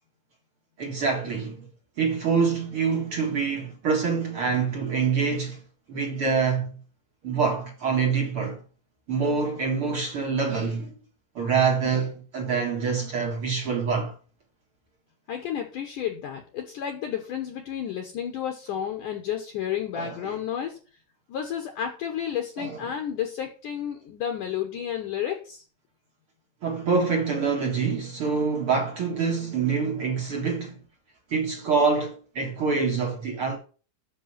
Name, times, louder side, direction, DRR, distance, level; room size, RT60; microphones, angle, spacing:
voice 1, 0.8-1.7 2.0-5.6 5.9-6.7 7.2-8.6 9.1-10.9 11.3-14.1 19.9-20.4 22.6-22.8 26.6-30.8 31.3-33.6, right 5 dB, 50° right, 1.7 m, -26 dB
voice 2, 15.3-20.8 21.3-25.6, left 9 dB, 65° left, 2.2 m, -31 dB
7.6 x 6.7 x 7.4 m
omnidirectional pair, 4.8 m